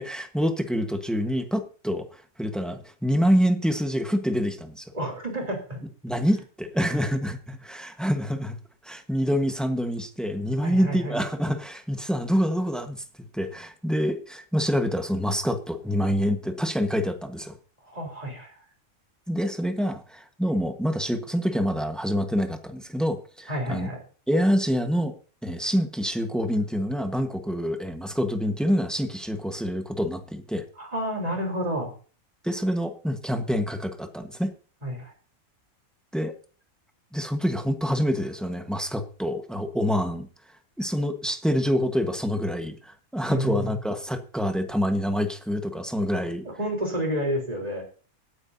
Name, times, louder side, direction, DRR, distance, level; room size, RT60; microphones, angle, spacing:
voice 1, 0.0-4.9 6.0-8.6 8.8-13.0 13.3-17.5 19.3-23.9 24.3-25.1 25.4-30.6 32.4-34.5 36.1-36.3 37.1-40.3 40.8-46.5, equal, ahead, 6 dB, 1.2 m, -26 dB
voice 2, 4.9-5.8 10.6-11.2 17.8-18.6 23.5-24.0 30.8-31.9 34.8-35.1 43.3-43.7 46.4-47.8, equal, 25° right, 0 dB, 3.8 m, -30 dB
17.0 x 9.5 x 2.8 m, 0.39 s
omnidirectional pair, 1.5 m